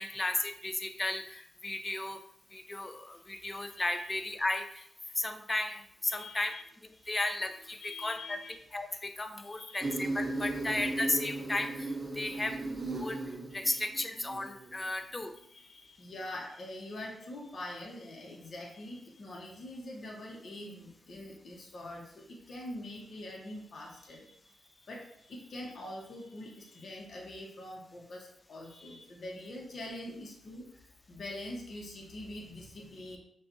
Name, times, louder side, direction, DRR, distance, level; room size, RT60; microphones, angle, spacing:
voice 1, 0.0-2.2 2.5-4.9 5.2-6.5 7.1-8.4 8.7-12.6 13.0-13.2 13.5-15.3, left 2 dB, 25° left, 8 dB, 0.4 m, -34 dB
voice 2, 6.1-6.6 7.0-7.1 7.8-8.6 9.4-10.0 13.6-13.8 14.8-15.0 15.5-30.7 31.1-33.2, left 1 dB, 60° left, -2 dB, 0.9 m, -44 dB
Insect, 9.8-14.8, right 2 dB, 30° right, 0.5 m, -36 dB
5.7 x 2.3 x 2.6 m, 0.70 s
cardioid pair, 80°, 0 cm